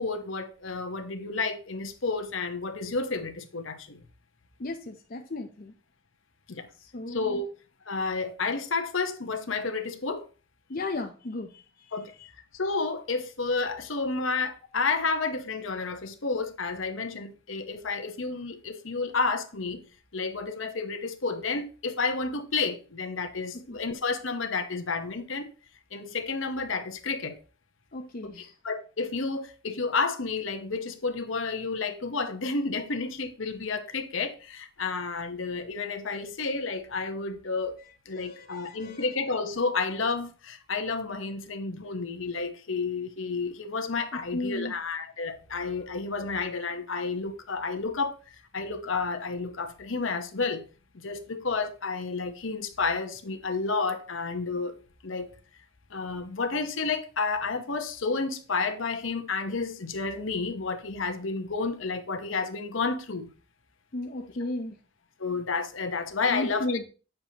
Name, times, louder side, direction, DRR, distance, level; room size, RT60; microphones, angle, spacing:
voice 1, 0.0-4.0 6.5-6.7 7.1-7.5 7.8-10.2 11.9-12.1 12.5-19.8 20.1-25.5 25.9-27.4 28.6-37.8 38.0-48.2 48.5-50.6 50.9-54.7 55.0-55.3 55.9-63.3 65.2-66.6, left 4 dB, 70° left, 1.0 m, -31 dB
voice 2, 4.6-5.7 6.8-7.4 10.7-12.3 23.5-23.8 27.9-28.5 38.1-39.1 44.3-44.7 63.9-64.8 66.3-66.8, left 2 dB, 45° left, 0.6 m, -35 dB
8.8 x 6.7 x 2.9 m
head